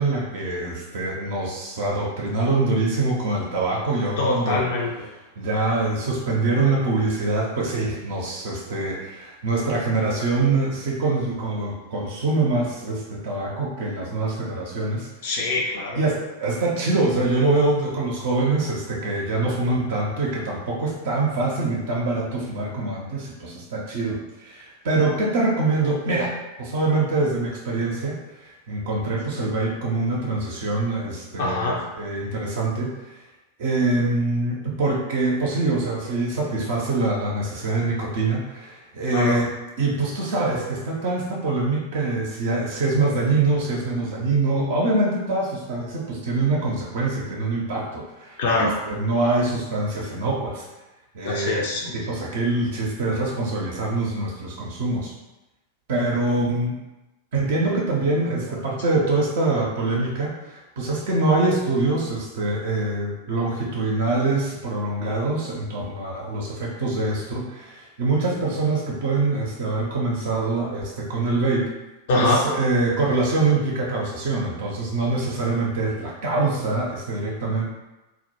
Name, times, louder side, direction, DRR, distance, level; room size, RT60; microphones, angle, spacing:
voice 1, 0.0-4.7 5.4-15.1 16.0-28.2 28.7-32.9 33.6-39.5 39.8-50.6 51.1-51.6 51.9-55.1 55.9-56.7 57.3-71.7 72.1-77.7, right 2 dB, 55° right, -3 dB, 0.5 m, -24 dB
voice 2, 4.2-4.9 15.2-16.0 31.4-31.8 39.1-39.4 48.4-48.7 51.2-51.9 72.1-72.4, left 2 dB, 55° left, -2 dB, 0.4 m, -23 dB
2.1 x 2.1 x 2.9 m, 1.0 s
figure-of-eight pair, 90°, 0 cm